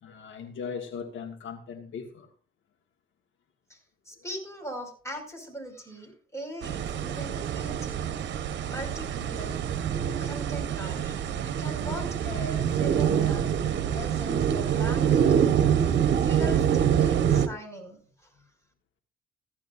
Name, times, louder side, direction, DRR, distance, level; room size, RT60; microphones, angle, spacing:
voice 1, 0.0-2.3, left 6 dB, 75° left, 1.6 m, -38 dB
voice 2, 4.1-8.0 8.6-9.6 10.2-15.6 16.0-18.0, equal, 15° left, 5.5 m, -40 dB
sound 1, 6.6-17.5, right 8 dB, 65° right, 1.0 m, -25 dB
15.5 x 11.5 x 2.6 m
cardioid pair, 90°, 20 cm